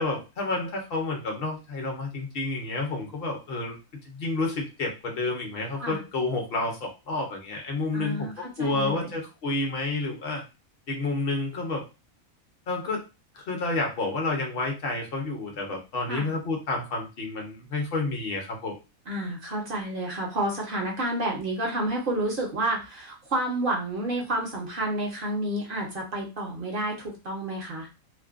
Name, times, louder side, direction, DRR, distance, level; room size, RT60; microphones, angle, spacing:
voice 1, 0.0-3.8 4.0-10.4 10.9-11.9 12.7-13.1 13.3-18.8, left 2 dB, 50° left, 2 dB, 0.8 m, -30 dB
voice 2, 7.9-9.2 16.1-16.3 19.1-27.9, right 1 dB, 55° right, -1 dB, 0.7 m, -30 dB
2.5 x 2.1 x 2.4 m, 0.28 s
omnidirectional pair, 1.4 m